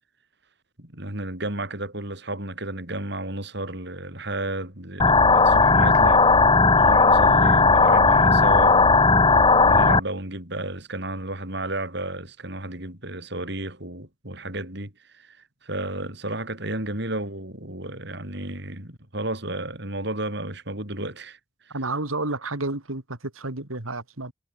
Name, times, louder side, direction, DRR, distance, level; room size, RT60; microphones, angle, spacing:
voice 1, 0.8-6.2 6.8-9.1 9.6-15.4 15.6-21.4, right 1 dB, 55° right, 5.9 m, -32 dB
sound 1, 5.0-10.0, left 3 dB, 25° left, 1.8 m, -16 dB
voice 2, 21.7-24.3, right 2 dB, 90° right, 2.9 m, -30 dB
head